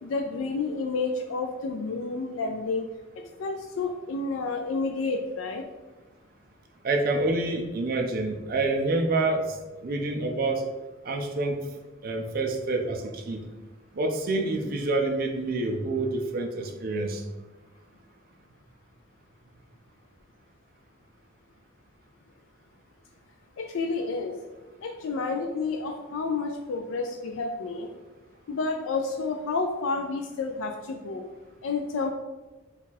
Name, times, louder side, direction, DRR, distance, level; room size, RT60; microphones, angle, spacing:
voice 1, 0.0-2.8 3.4-5.6 23.6-24.3 24.8-27.9 28.5-31.2 31.6-32.1, left 4 dB, 90° left, 4 dB, 0.4 m, -30 dB
voice 2, 6.8-10.7 11.0-11.6 12.0-13.5 13.9-17.2, right 2 dB, 45° right, 3 dB, 0.5 m, -27 dB
4.2 x 2.4 x 4.1 m, 1.2 s
head